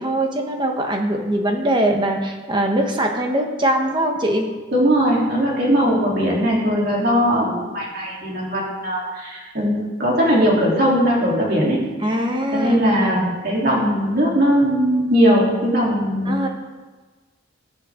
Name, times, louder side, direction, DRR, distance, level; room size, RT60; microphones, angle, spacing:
voice 1, 0.0-4.5 12.0-13.4 16.2-16.5, right 1 dB, 20° right, 2 dB, 1.3 m, -22 dB
voice 2, 4.7-9.7 10.0-11.8 12.5-16.3, equal, 50° right, -4 dB, 3.5 m, -19 dB
21.5 x 7.9 x 3.8 m, 1.3 s
head